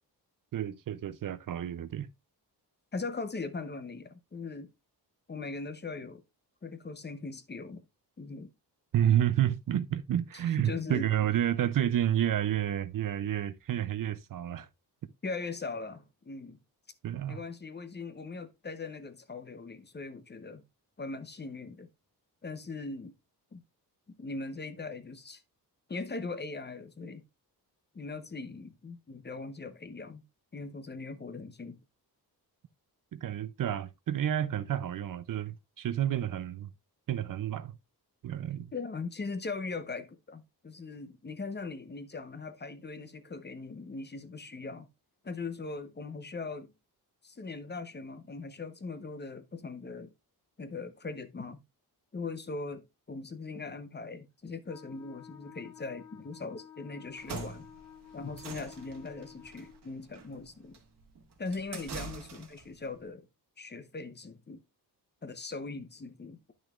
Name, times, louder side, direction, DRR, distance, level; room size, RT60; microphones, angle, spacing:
voice 1, 0.5-2.1 8.9-14.7 17.0-17.4 33.1-36.7 37.1-37.7 38.2-38.7, right 11 dB, 55° right, 0.5 m, -30 dB
voice 2, 2.9-4.7 5.3-6.2 6.6-7.8 8.2-8.5 10.3-11.1 15.2-16.6 17.3-20.6 21.0-21.9 22.4-23.1 23.5-23.6 24.2-25.4 25.9-27.2 27.9-30.2 30.5-31.8 38.7-44.9 45.2-46.7 47.2-50.1 50.6-51.6 52.1-57.7 58.1-60.8 61.4-63.3 63.6-64.6 65.2-66.5, left 3 dB, 25° left, 0.8 m, -40 dB
Wind instrument woodwind instrument, 54.7-59.8, left 8 dB, 10° left, 2.3 m, -52 dB
sound 1, 57.1-62.7, right 5 dB, 80° right, 2.1 m, -45 dB
10.5 x 6.3 x 2.4 m
wide cardioid pair, 120°, 39 cm